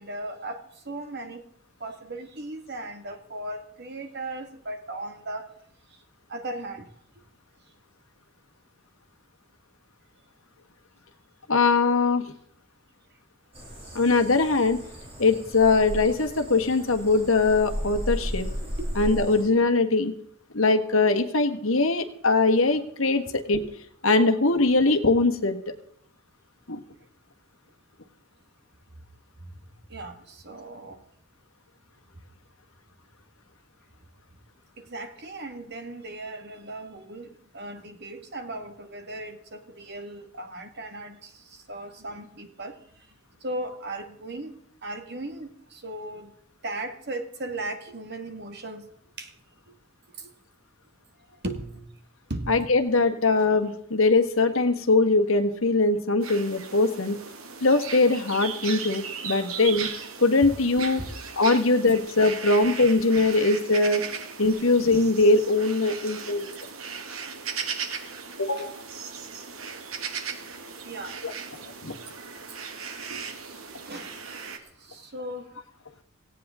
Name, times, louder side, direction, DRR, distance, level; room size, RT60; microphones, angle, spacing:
voice 1, 0.0-1.4 1.8-5.5 6.3-6.9 18.2-18.3 18.6-18.9 23.3-23.4 29.9-31.0 34.8-42.8 43.4-44.5 44.8-46.4 46.6-48.9 49.2-49.3 49.7-49.8 50.2-50.3 51.3-51.9 52.3-52.6 53.1-53.2 59.4-59.8 61.0-61.1 68.6-68.7 70.8-71.2 72.9-73.4 73.8-75.5, right 2 dB, 50° right, 7 dB, 1.8 m, -37 dB
voice 2, 11.5-12.2 13.9-14.8 15.2-18.5 19.0-20.1 20.5-23.6 24.0-25.6 26.7-26.8 52.5-57.2 57.6-59.9 60.2-61.0 61.4-64.0 64.4-66.5 68.4-68.8 71.2-71.3 71.8-71.9, left 3 dB, 70° left, 6 dB, 1.6 m, -21 dB
sound 1, 13.5-19.4, equal, 30° right, 7.7 m, -35 dB
sound 2, 56.2-74.6, right 6 dB, 80° right, 2.0 m, -37 dB
17.5 x 17.0 x 3.7 m, 0.64 s
head